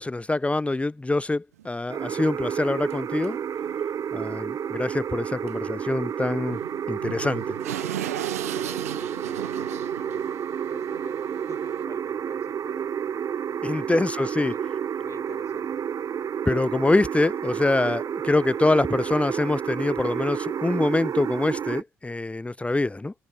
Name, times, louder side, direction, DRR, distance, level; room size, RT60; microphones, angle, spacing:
voice 1, 0.0-3.4 4.1-6.6 6.9-7.6 13.6-14.5 16.4-23.1, left 2 dB, 15° left, 1.7 m, -25 dB
sound 1, 1.5-1.7 2.1-2.2 2.9-3.0 3.2-3.3 3.6-3.8 5.5-5.6 5.9-6.0 6.5-11.8, right 12 dB, 80° right, 3.4 m, -37 dB
sound 2, 1.9-21.8, right 8 dB, 45° right, 1.0 m, -30 dB
voice 2, 8.6-10.2 10.7-12.9 13.7-14.1 14.3-14.6 15.0-15.8, left 5 dB, 35° left, 7.0 m, -49 dB
figure-of-eight pair, 45°, 8 cm